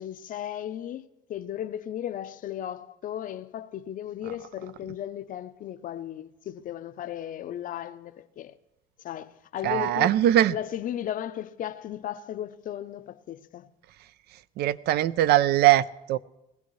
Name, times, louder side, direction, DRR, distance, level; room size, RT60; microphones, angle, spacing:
voice 1, 0.0-8.5 9.0-10.2 10.5-13.7, left 11 dB, 55° left, 0.6 m, -35 dB
voice 2, 9.6-10.5 14.6-16.2, right 13 dB, 70° right, 0.4 m, -21 dB
20.0 x 15.5 x 3.1 m
cardioid pair, 110°, 17 cm